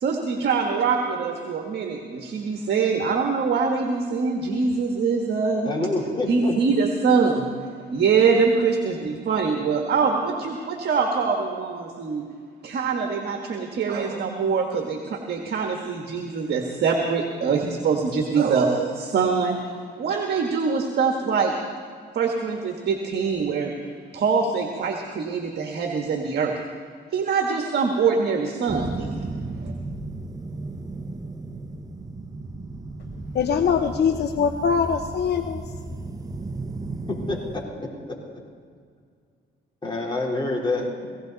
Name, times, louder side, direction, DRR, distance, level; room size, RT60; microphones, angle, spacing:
voice 1, 0.0-5.7 6.3-7.5 7.9-12.2 12.6-19.6 20.0-21.5 22.1-23.7 24.1-26.6 27.1-29.2 29.6-29.7, right 5 dB, 55° right, 3 dB, 1.5 m, -24 dB
voice 2, 5.6-6.5 37.1-38.2 39.8-41.2, left 2 dB, 25° left, -2 dB, 3.8 m, -27 dB
sound 1, 28.7-37.6, right 2 dB, 20° right, 1.0 m, -34 dB
voice 3, 33.3-35.6, left 6 dB, 55° left, 6 dB, 0.8 m, -22 dB
18.5 x 16.5 x 4.0 m, 2.1 s
cardioid pair, 90°, 20 cm